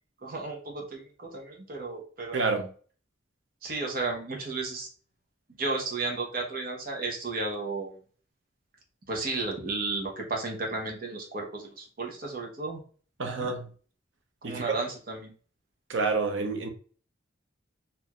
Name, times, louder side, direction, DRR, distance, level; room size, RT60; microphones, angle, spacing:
voice 1, 0.2-2.6 3.6-4.9 5.6-7.9 9.1-12.8 13.2-13.5 14.4-15.3, right 3 dB, 50° right, 1.0 m, -33 dB
voice 2, 2.3-2.7 13.2-13.7 14.4-14.7 15.9-16.7, right 4 dB, 80° right, 0.8 m, -28 dB
4.6 x 2.7 x 2.4 m
head